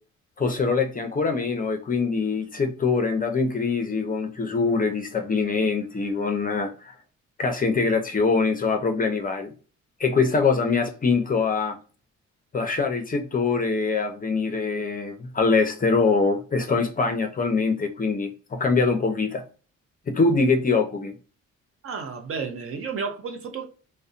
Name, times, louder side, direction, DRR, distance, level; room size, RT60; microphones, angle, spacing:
voice 1, 0.4-6.9 7.4-9.5 10.0-11.8 12.5-19.4 20.1-21.1, left 4 dB, 30° left, 0.5 m, -23 dB
voice 2, 21.8-23.6, right 5 dB, 45° right, 0.6 m, -32 dB
2.5 x 2.1 x 2.4 m
cardioid pair, 90°, 30 cm